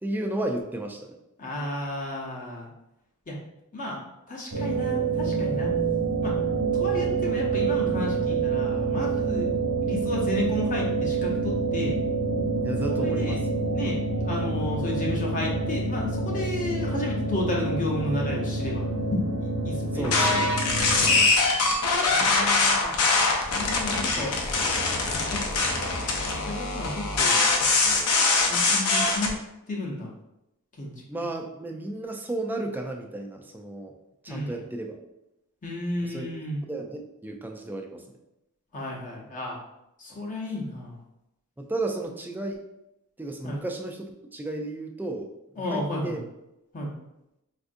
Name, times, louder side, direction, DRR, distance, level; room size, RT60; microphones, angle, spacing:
voice 1, 0.0-1.2 12.6-13.4 19.9-20.6 31.1-33.9 34.2-35.0 36.0-36.3 36.7-38.0 40.5-40.6 41.6-42.6 43.2-45.3 45.5-46.2, right 2 dB, 10° right, 2 dB, 0.3 m, -33 dB
voice 2, 1.4-2.7 3.3-3.4 3.7-4.0 4.3-5.7 6.2-6.3 6.8-9.5 9.8-12.0 12.8-13.4 13.7-18.9 19.6-20.1 22.0-22.9 23.5-24.4 25.3-25.4 26.5-27.4 28.5-29.3 29.7-30.1 30.8-30.9 34.3-34.6 35.6-36.6 38.7-39.6 40.0-40.9 43.4-43.6 45.6-46.2 46.7-46.9, left 1 dB, 35° left, -3 dB, 0.7 m, -32 dB
sound 1, 4.5-21.2, right 4 dB, 75° right, 0.9 m, -27 dB
sound 2, 20.0-29.3, left 3 dB, 80° left, 0.6 m, -23 dB
4.3 x 2.4 x 2.5 m, 0.87 s
head